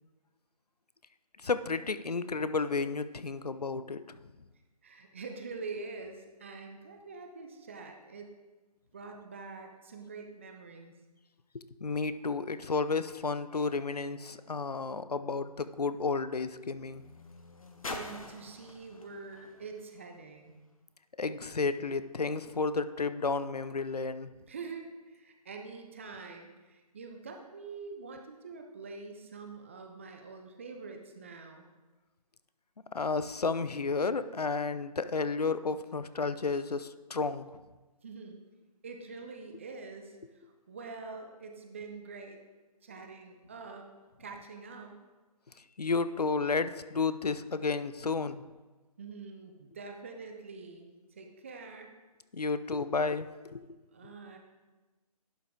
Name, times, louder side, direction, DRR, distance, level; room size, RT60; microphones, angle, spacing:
voice 1, 1.4-4.2 11.5-17.0 21.2-24.3 32.9-37.5 45.8-48.4 52.3-53.7 54.0-54.1, left 4 dB, 80° left, 13 dB, 0.5 m, -32 dB
voice 2, 4.8-8.4 8.9-10.9 17.9-20.6 24.5-31.7 38.0-38.4 38.8-42.4 42.8-43.9 44.2-45.0 49.0-51.9 53.9-54.4, right 4 dB, 20° right, 4 dB, 0.5 m, -45 dB
sound 1, 14.4-20.8 21.6-21.7, left 2 dB, 60° left, 1.0 m, -48 dB
11.0 x 5.5 x 3.7 m, 1.2 s
figure-of-eight pair, 145°, 20 cm